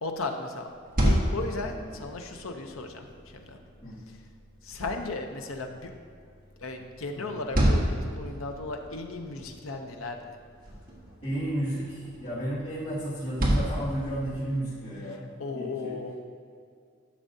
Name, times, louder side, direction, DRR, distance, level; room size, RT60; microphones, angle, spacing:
voice 1, 0.0-0.7 1.0-3.1 3.3-3.6 4.6-5.9 6.6-10.4 15.4-16.1, left 3 dB, 75° left, 4 dB, 0.8 m, -35 dB
sound 1, 0.7-14.6, equal, 45° right, 1.5 m, -32 dB
voice 2, 1.6-2.0 3.8-4.0 7.1-7.5 11.2-16.0, right 1 dB, 35° left, -13 dB, 2.0 m, -33 dB
11.5 x 6.2 x 2.8 m, 2.3 s
head